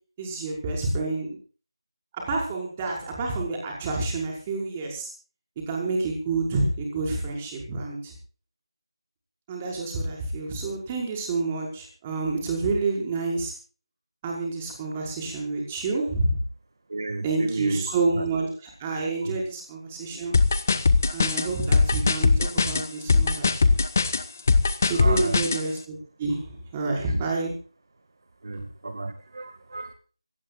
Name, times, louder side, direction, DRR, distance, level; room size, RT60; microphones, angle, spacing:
voice 1, 0.2-1.4 2.1-5.1 5.7-8.1 9.5-13.5 14.2-16.4 17.2-20.3 21.1-23.8 24.8-26.4 26.7-27.5, right 3 dB, 15° right, 0 dB, 5.5 m, -28 dB
voice 2, 16.9-17.8 18.2-18.3 19.2-19.4 20.1-20.3 24.9-25.4 27.0-27.2 28.4-29.9, right 2 dB, 50° right, 9 dB, 2.0 m, -33 dB
sound 1, 20.3-25.6, left 4 dB, 30° left, 1.5 m, -21 dB
25.0 x 18.5 x 2.5 m, 0.39 s
figure-of-eight pair, 170°, 3 cm